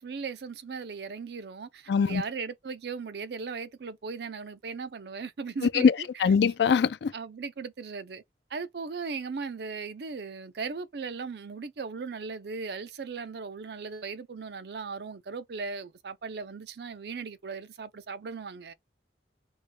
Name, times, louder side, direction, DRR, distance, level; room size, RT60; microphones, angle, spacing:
voice 1, 0.0-6.1 7.1-8.2 8.5-18.7, right 5 dB, 65° right, 0.5 m, -37 dB
voice 2, 1.9-2.2 5.7-7.1, left 6 dB, 70° left, 0.4 m, -23 dB
3.9 x 2.2 x 3.3 m
head